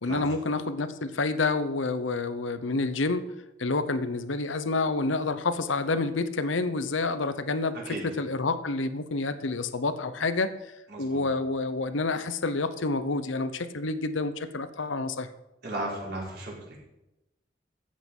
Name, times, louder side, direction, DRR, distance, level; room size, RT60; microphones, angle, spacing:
voice 1, 0.0-3.2 3.6-10.5 11.0-15.3, left 3 dB, 85° left, 12 dB, 0.9 m, -28 dB
voice 2, 10.9-11.2 15.6-16.7, right 1 dB, 55° right, -3 dB, 4.6 m, -35 dB
14.0 x 8.5 x 5.4 m, 0.95 s
head